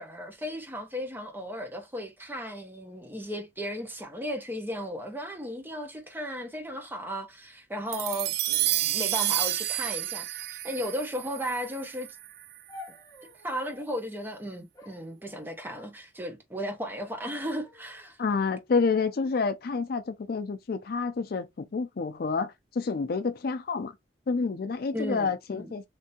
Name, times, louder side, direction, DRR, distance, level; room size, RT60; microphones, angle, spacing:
voice 1, 0.0-12.2 13.4-18.2 24.9-25.7, equal, 10° right, 0.8 m, -35 dB
sound 1, 7.9-12.4, right 13 dB, 55° right, 0.3 m, -30 dB
sound 2, 12.7-13.9 14.7-16.0 16.7-17.2 17.6-18.1 18.8-20.1 20.9-21.4, left 3 dB, 20° left, 1.0 m, -52 dB
voice 2, 18.2-23.9 24.3-25.9, left 4 dB, 50° left, 0.4 m, -29 dB
3.3 x 2.7 x 2.7 m
head